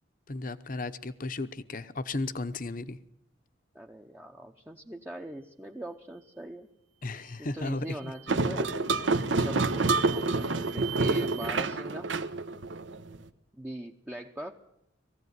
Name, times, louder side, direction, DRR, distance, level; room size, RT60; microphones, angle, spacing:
voice 1, 0.3-3.0 7.0-8.1, left 2 dB, 45° left, 12 dB, 0.9 m, -34 dB
voice 2, 3.7-6.7 7.4-8.8 9.4-12.1 13.5-14.6, right 1 dB, 10° right, 2 dB, 0.8 m, -41 dB
sound 1, 7.1-7.4 7.8-8.4 8.9-11.5, right 14 dB, 40° right, 1.7 m, -44 dB
sound 2, 8.3-13.2, right 3 dB, 80° right, 1.1 m, -28 dB
20.0 x 15.5 x 9.5 m, 0.82 s
head